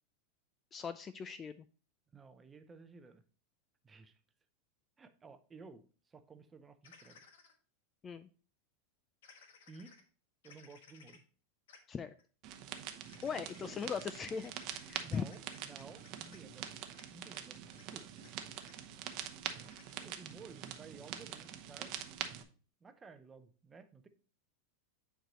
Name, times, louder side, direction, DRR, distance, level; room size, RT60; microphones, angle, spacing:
voice 1, 0.7-1.7 8.0-8.3 11.9-12.1 13.2-14.5 14.8-15.2, left 6 dB, 20° left, 0.3 m, -39 dB
voice 2, 2.1-3.2 3.8-4.2 5.0-7.3 9.7-10.0 10.4-11.2 13.6-13.8 15.0-16.7 17.1-18.2 19.5-19.7 20.0-22.0 22.8-24.1, right 4 dB, 15° right, 0.6 m, -55 dB
sound 1, 6.8-7.5 9.2-10.0 10.4-11.2 11.7-11.8 12.1-12.2 13.1-17.0 17.3-17.4 17.7-17.8 18.2-18.3 18.6-18.7 19.5-19.9, left 5 dB, 80° left, 1.5 m, -60 dB
sound 2, 12.4-22.4, right 10 dB, 45° right, 0.8 m, -45 dB
9.2 x 4.6 x 3.0 m
supercardioid pair, 150°, 0 cm